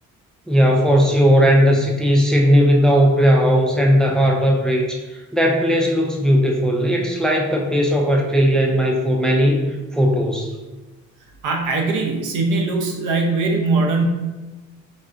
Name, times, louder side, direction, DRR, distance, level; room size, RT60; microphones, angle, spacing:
voice 1, 0.5-10.5, equal, ahead, -1 dB, 0.4 m, -17 dB
voice 2, 11.4-14.0, right 3 dB, 80° right, 2 dB, 0.6 m, -21 dB
3.4 x 2.3 x 2.5 m, 1.2 s
cardioid pair, 90°, 30 cm